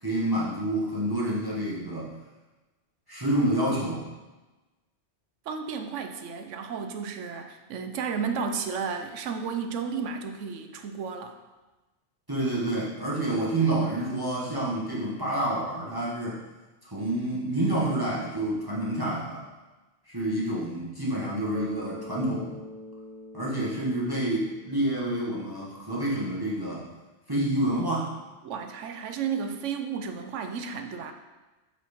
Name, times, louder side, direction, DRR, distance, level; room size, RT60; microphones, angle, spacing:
voice 1, 0.0-2.1 3.1-4.0 12.3-16.4 16.9-19.4 20.1-22.5 23.3-26.8 27.3-28.1, right 1 dB, 20° right, -6 dB, 1.2 m, -28 dB
voice 2, 5.5-11.4 28.4-31.1, right 6 dB, 90° right, 6 dB, 1.0 m, -33 dB
Bass guitar, 21.5-25.5, equal, 45° right, 2.0 m, -43 dB
8.0 x 4.4 x 4.2 m, 1.2 s
omnidirectional pair, 1.2 m